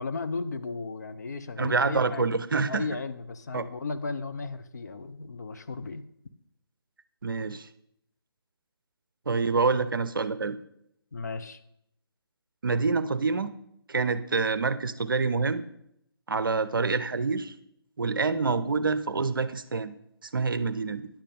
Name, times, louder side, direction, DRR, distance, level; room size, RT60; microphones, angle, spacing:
voice 1, 0.0-2.3 2.7-6.0 11.1-11.6, left 4 dB, 45° left, 9 dB, 0.6 m, -35 dB
voice 2, 1.6-2.9 3.5-3.6 7.2-7.7 9.3-10.6 12.6-13.5 13.9-15.6 16.3-17.5 18.0-19.9 20.3-21.1, right 4 dB, 55° right, 14 dB, 0.6 m, -27 dB
10.0 x 8.2 x 3.7 m, 0.74 s
figure-of-eight pair, 145°, 13 cm